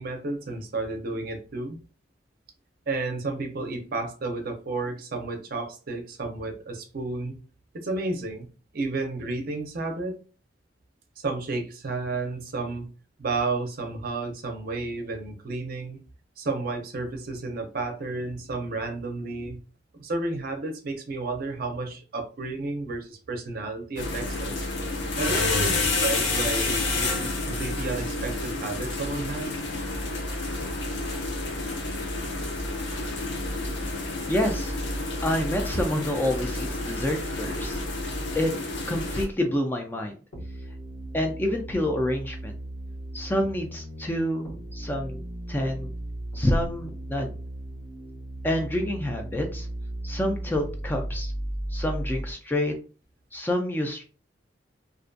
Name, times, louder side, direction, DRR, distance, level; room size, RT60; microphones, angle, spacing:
voice 1, 0.0-1.8 2.9-7.4 7.7-8.5 8.7-10.2 11.2-12.9 13.2-16.0 16.4-19.6 20.0-24.7 25.2-29.6, right 3 dB, 50° right, 4 dB, 0.5 m, -32 dB
sound 1, 24.0-39.2, left 2 dB, 70° left, 0.6 m, -29 dB
voice 2, 34.3-35.0 35.2-37.8 38.3-38.5 38.9-40.1 41.1-42.5 43.1-45.9 46.3-47.3 48.4-49.7 50.0-51.3 51.7-52.7 53.3-54.0, left 1 dB, 10° left, 3 dB, 0.3 m, -28 dB
sound 2, 40.3-52.3, right 1 dB, 85° left, 1.2 m, -36 dB
2.5 x 2.2 x 2.5 m, 0.37 s
head